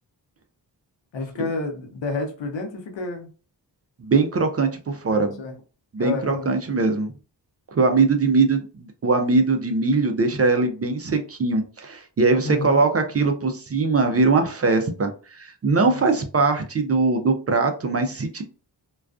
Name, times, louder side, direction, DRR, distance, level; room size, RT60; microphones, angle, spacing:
voice 1, 1.1-3.3 5.1-5.5 6.0-6.5 12.4-12.8 15.7-16.0, left 3 dB, 85° left, 0.7 m, -30 dB
voice 2, 4.0-5.4 5.9-7.1 7.7-18.4, right 3 dB, 35° right, 0.4 m, -21 dB
2.3 x 2.3 x 2.3 m
cardioid pair, 70°, 43 cm